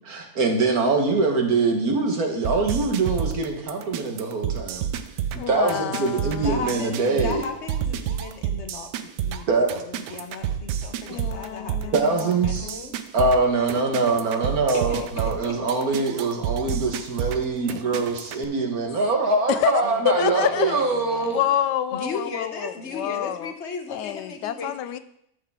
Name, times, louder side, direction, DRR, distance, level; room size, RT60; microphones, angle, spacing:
voice 1, 0.0-4.9 5.5-7.4 9.5-9.7 11.9-12.7 13.1-21.4, right 3 dB, 60° right, 3 dB, 1.8 m, -23 dB
sound 1, 2.4-18.4, right 9 dB, 85° right, 1.3 m, -30 dB
voice 2, 5.3-7.3 11.1-12.3 12.6-12.8 19.5-20.8 21.2-23.5 23.9-25.0, left 11 dB, 85° left, 14 dB, 1.2 m, -28 dB
voice 3, 6.4-9.5 9.7-13.0 14.7-15.7 17.6-17.8 19.8-21.4 21.9-25.0, left 4 dB, 45° left, 4 dB, 1.3 m, -36 dB
13.0 x 6.6 x 3.6 m, 0.77 s
omnidirectional pair, 1.8 m